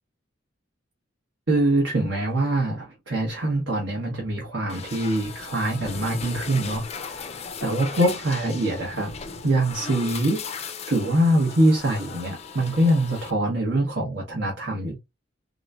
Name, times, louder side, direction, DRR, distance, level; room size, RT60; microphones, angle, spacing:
voice 1, 1.5-9.1 9.4-15.0, right 1 dB, 70° right, 1.2 m, -24 dB
sound 1, 4.7-13.3, left 5 dB, 35° left, 0.4 m, -37 dB
3.8 x 3.0 x 2.3 m
head